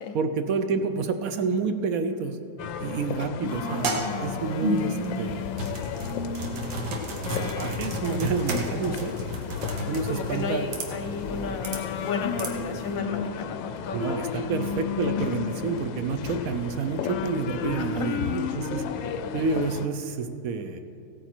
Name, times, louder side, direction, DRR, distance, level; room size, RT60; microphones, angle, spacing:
voice 1, 0.1-2.4 2.8-5.4 6.8-6.9 7.3-9.1 9.9-10.7 13.9-18.9 19.3-20.8, right 5 dB, 70° right, 8 dB, 0.9 m, -29 dB
sound 1, 2.6-19.9, left 7 dB, 90° left, 1.3 m, -33 dB
sound 2, 3.5-12.9, right 1 dB, 90° right, 2.0 m, -33 dB
voice 2, 8.6-9.2 10.1-14.8 15.1-15.4 17.8-18.1 19.0-19.3, left 4 dB, 60° left, 6 dB, 1.0 m, -34 dB
15.5 x 9.1 x 4.4 m, 2.8 s
omnidirectional pair, 2.0 m